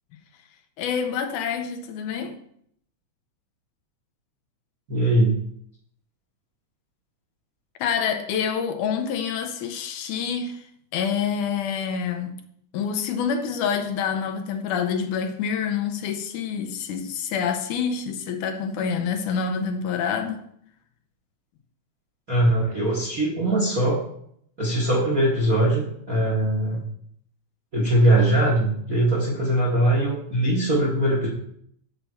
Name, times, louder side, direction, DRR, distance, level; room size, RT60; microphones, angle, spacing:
voice 1, 0.8-2.4 7.8-10.7 10.9-12.3 12.7-20.4, left 7 dB, 85° left, 2.3 m, -27 dB
voice 2, 4.9-5.3 22.3-24.0 24.6-26.9 27.7-31.3, right 1 dB, 50° right, 1.0 m, -21 dB
7.0 x 6.7 x 4.4 m
omnidirectional pair, 3.5 m